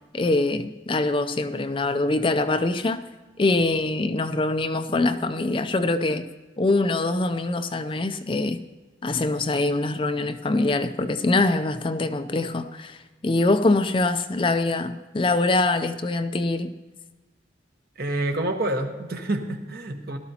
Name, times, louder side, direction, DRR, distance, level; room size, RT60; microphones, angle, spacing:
voice 1, 0.1-3.1 3.4-6.2 6.6-8.6 9.0-16.7, left 2 dB, 25° left, 0.4 m, -24 dB
voice 2, 18.0-20.2, right 1 dB, 55° right, 1.2 m, -28 dB
18.0 x 12.5 x 2.9 m
head